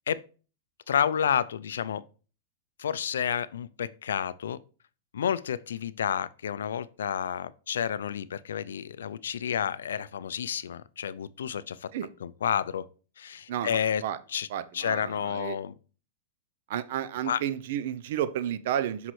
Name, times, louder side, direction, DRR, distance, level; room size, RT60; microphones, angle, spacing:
voice 1, 0.9-2.0 2.8-4.6 5.1-11.9 12.2-12.9 13.2-14.0 14.3-14.5 14.7-15.8 17.3-17.4, left 8 dB, 85° left, 0.3 m, -30 dB
voice 2, 13.5-14.2 14.5-15.6 16.7-19.1, right 10 dB, 65° right, 0.5 m, -32 dB
6.0 x 5.5 x 3.1 m
hypercardioid pair, 130°, 0 cm